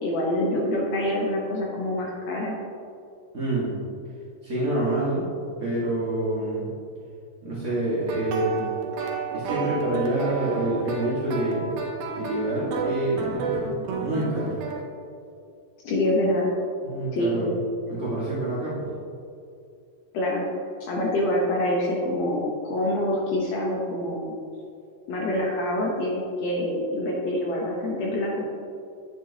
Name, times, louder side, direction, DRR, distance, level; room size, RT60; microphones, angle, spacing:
voice 1, 0.0-2.6 15.8-16.5 17.1-17.4 20.1-20.5 20.8-24.3 25.1-28.5, left 1 dB, 70° left, -2 dB, 1.6 m, -26 dB
voice 2, 3.3-3.7 4.4-5.2 5.6-6.7 7.4-8.7 9.3-11.7 12.2-14.5 16.8-17.5 17.9-18.8, right 1 dB, 60° right, -8 dB, 0.7 m, -27 dB
sound 1, 7.9-14.8, right 5 dB, 85° right, 2.7 m, -31 dB
9.0 x 8.9 x 2.8 m, 2.5 s
omnidirectional pair, 4.1 m